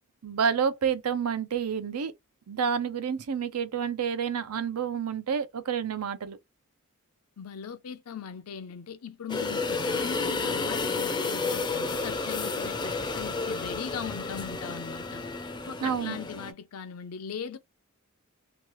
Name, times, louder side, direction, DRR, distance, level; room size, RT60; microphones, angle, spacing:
voice 1, 0.2-2.1 2.5-6.4 15.8-16.2, right 7 dB, 90° right, 0.6 m, -29 dB
voice 2, 7.4-15.2 15.7-17.6, left 7 dB, 80° left, 0.5 m, -39 dB
sound 1, 9.3-16.5, left 3 dB, 20° left, 0.4 m, -31 dB
2.9 x 2.3 x 3.0 m
head